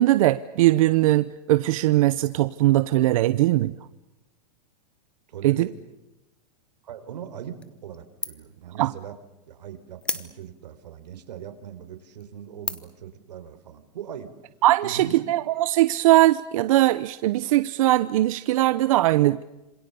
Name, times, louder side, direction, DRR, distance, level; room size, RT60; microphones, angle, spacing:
voice 1, 0.0-3.7 5.4-5.7 8.8-8.9 14.6-19.4, right 16 dB, 55° right, 14 dB, 0.8 m, -20 dB
voice 2, 5.3-5.7 6.8-9.1 9.5-14.3 14.8-15.3, right 9 dB, 80° right, 8 dB, 4.2 m, -40 dB
sound 1, 7.6-8.6 9.0-9.1 10.0-10.7 11.4-11.5 12.0-12.2 12.6-13.1, left 2 dB, 5° left, 1.1 m, -33 dB
27.5 x 26.0 x 7.0 m, 0.98 s
supercardioid pair, 165°, 21 cm